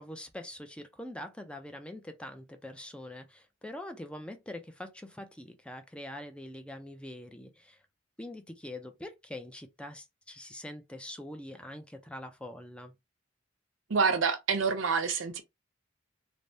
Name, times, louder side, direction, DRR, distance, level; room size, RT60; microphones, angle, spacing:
voice 1, 0.0-7.8 8.2-12.9, left 1 dB, 5° left, 0.4 m, -44 dB
voice 2, 13.9-15.4, right 5 dB, 80° right, 0.7 m, -27 dB
3.3 x 2.0 x 2.6 m
head